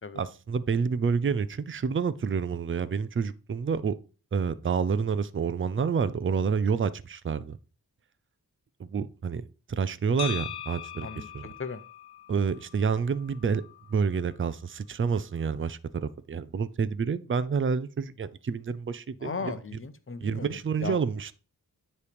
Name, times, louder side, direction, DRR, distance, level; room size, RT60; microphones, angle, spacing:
voice 1, 0.2-4.0 4.3-7.6 8.8-11.4 12.3-13.6 13.9-19.3 20.2-21.4, right 6 dB, 35° right, 0.5 m, -28 dB
sound 1, 10.2-14.3, left 10 dB, 85° left, 0.8 m, -41 dB
voice 2, 11.0-11.8 19.2-21.0, left 4 dB, 35° left, 0.8 m, -37 dB
9.6 x 3.3 x 5.1 m
cardioid pair, 70°, 37 cm